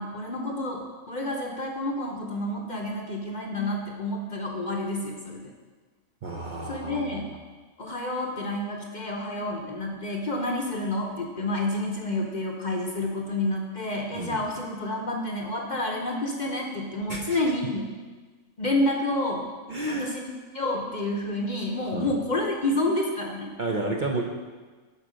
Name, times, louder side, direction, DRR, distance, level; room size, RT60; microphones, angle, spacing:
voice 1, 0.0-5.4 6.7-7.3 7.8-17.9 18.6-19.5 19.9-20.2 20.5-23.5, left 1 dB, 40° left, 1 dB, 0.9 m, -29 dB
voice 2, 6.2-7.2 14.2-14.4 17.1-17.4 19.7-20.1 21.9-22.1 23.6-24.2, right 2 dB, 45° right, 0 dB, 0.7 m, -31 dB
11.0 x 4.5 x 5.1 m, 1.4 s
omnidirectional pair, 1.4 m